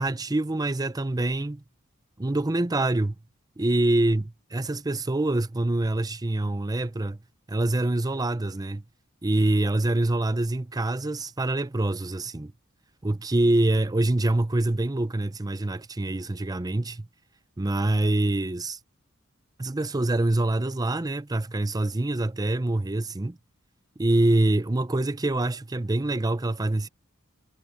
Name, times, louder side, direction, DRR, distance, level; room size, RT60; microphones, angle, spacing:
voice 1, 0.0-1.6 2.2-3.1 3.6-7.2 7.5-8.8 9.2-12.5 13.0-17.1 17.6-18.8 19.6-23.4 24.0-26.9, right 2 dB, 20° right, 0.6 m, -25 dB
head